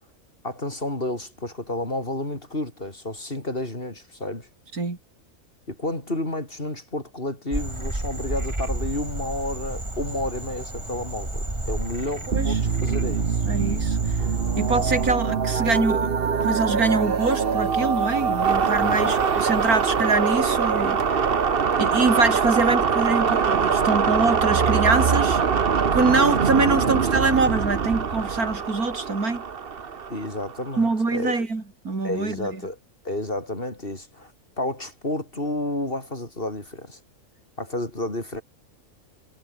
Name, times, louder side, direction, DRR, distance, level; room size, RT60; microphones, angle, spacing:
voice 1, 0.4-4.5 5.7-13.5 18.8-19.2 26.6-26.9 30.1-31.5 32.0-32.8 33.0-34.3 34.6-37.0 37.6-38.4, left 1 dB, 40° left, 5.3 m, -31 dB
Frog, 7.5-15.1, right 1 dB, 20° right, 3.5 m, -32 dB
sound 1, 12.3-30.8, right 6 dB, 40° right, 1.3 m, -23 dB
voice 2, 13.4-14.0 14.6-16.1 16.4-21.0 21.8-25.4 25.9-29.4 30.8-32.6, right 3 dB, 90° right, 4.1 m, -24 dB
omnidirectional pair, 1.5 m